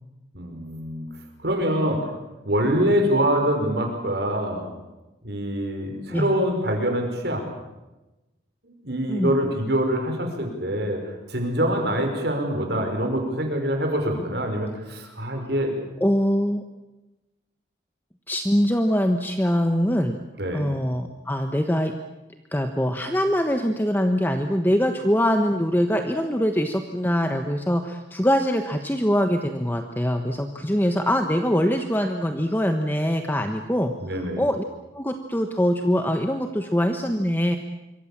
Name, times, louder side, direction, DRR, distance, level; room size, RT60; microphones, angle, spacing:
voice 1, 0.3-1.1 1.4-2.0 2.5-4.7 5.2-7.4 8.6-11.0 11.3-15.7 20.4-20.6 34.0-34.4, equal, 65° right, 4 dB, 5.4 m, -25 dB
voice 2, 15.0-15.4 16.0-16.6 18.3-20.2 20.5-21.9 22.5-34.6 34.9-37.6, equal, 10° left, 6 dB, 1.1 m, -23 dB
26.5 x 24.0 x 7.4 m, 1.0 s
head